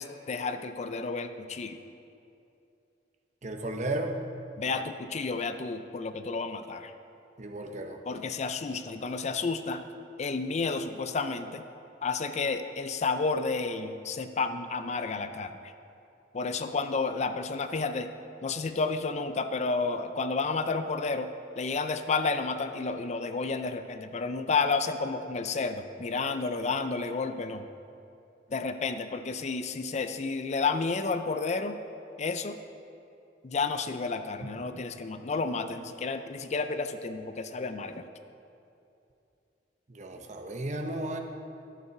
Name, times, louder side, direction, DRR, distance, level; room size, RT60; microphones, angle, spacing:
voice 1, 0.0-1.8 4.6-6.9 8.1-9.8 10.2-11.6 12.0-15.5 16.3-18.1 18.4-21.3 21.6-27.7 28.5-31.8 32.2-32.6 33.4-38.0, left 4 dB, 40° left, 9 dB, 0.4 m, -31 dB
voice 2, 3.4-4.1 7.4-8.0 34.4-34.5 39.9-41.2, right 1 dB, 40° right, 4 dB, 0.8 m, -34 dB
11.5 x 7.1 x 5.8 m, 2.7 s
head